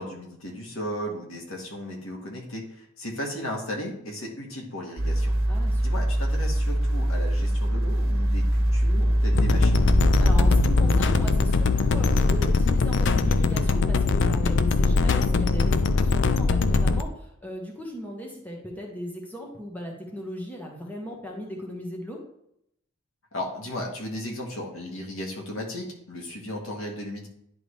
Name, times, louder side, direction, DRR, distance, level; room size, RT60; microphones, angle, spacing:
voice 1, 0.0-5.3 5.8-9.9 23.3-27.3, left 1 dB, 80° left, -1 dB, 1.8 m, -35 dB
sound 1, 5.0-13.2 13.6-13.7, equal, 90° right, 1.3 m, -24 dB
voice 2, 5.5-6.0 10.2-22.2, equal, 10° left, -1 dB, 1.4 m, -37 dB
sound 2, 9.3-17.0, left 4 dB, 60° left, 0.4 m, -22 dB
10.5 x 3.8 x 3.2 m, 0.75 s
head